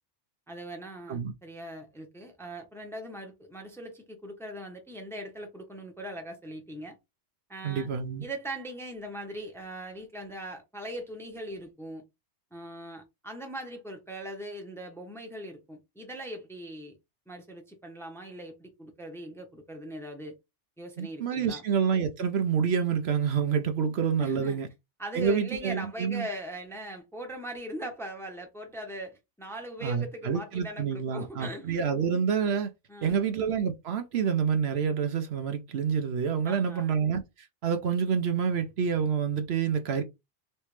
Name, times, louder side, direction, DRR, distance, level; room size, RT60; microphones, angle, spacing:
voice 1, 0.5-7.0 7.5-7.9 8.2-12.0 12.5-17.0 17.3-20.4 20.8-21.7 24.2-24.6 25.0-31.8 32.9-33.3 36.4-36.9, right 1 dB, 5° left, 0.8 m, -40 dB
voice 2, 7.6-8.2 21.0-24.7 25.1-26.3 29.8-32.7 33.0-40.0, right 6 dB, 65° right, 0.8 m, -28 dB
3.2 x 3.0 x 3.1 m
omnidirectional pair, 1.2 m